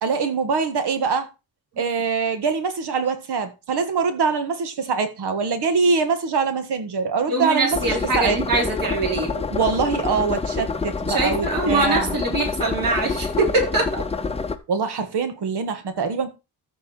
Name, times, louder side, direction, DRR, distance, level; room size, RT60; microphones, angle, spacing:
voice 1, 0.0-1.3 1.8-8.4 9.5-12.2 14.7-16.3, right 5 dB, 85° right, 1.7 m, -23 dB
voice 2, 7.3-9.5 11.1-14.0, right 3 dB, 55° right, 3.4 m, -23 dB
sound 1, 7.7-14.6, left 4 dB, 15° left, 0.6 m, -27 dB
13.5 x 4.7 x 4.5 m
wide cardioid pair, 180°, 39 cm